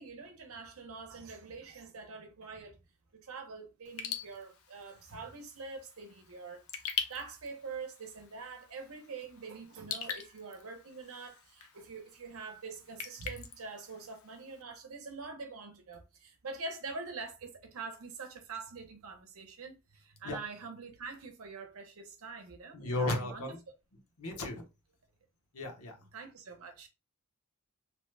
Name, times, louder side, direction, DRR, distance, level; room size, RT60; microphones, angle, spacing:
voice 1, 0.0-2.8 3.1-23.5 26.1-26.9, right 4 dB, 70° right, 0.7 m, -45 dB
Raindrop / Drip, 3.8-14.6, left 7 dB, 70° left, 0.5 m, -44 dB
voice 2, 22.7-23.6 24.2-24.6 25.5-25.9, left 2 dB, 90° left, 1.0 m, -34 dB
2.9 x 2.1 x 3.2 m
head